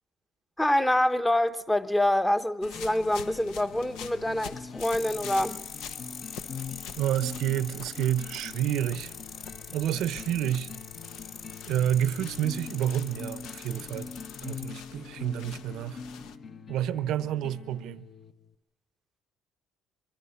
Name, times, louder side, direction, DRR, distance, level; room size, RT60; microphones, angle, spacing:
voice 1, 0.6-5.6, left 1 dB, 10° left, 1.0 m, -26 dB
sound 1, 2.6-16.4, left 7 dB, 80° left, 1.0 m, -47 dB
sound 2, 2.6-18.5, left 5 dB, 45° left, 1.3 m, -44 dB
sound 3, 4.8-14.7, left 5 dB, 65° left, 4.2 m, -43 dB
voice 2, 7.0-9.1 9.7-10.7 11.7-14.1 14.4-16.0 16.7-18.1, right 11 dB, 70° right, 0.9 m, -29 dB
24.0 x 23.5 x 5.8 m
supercardioid pair, 85°, 0 cm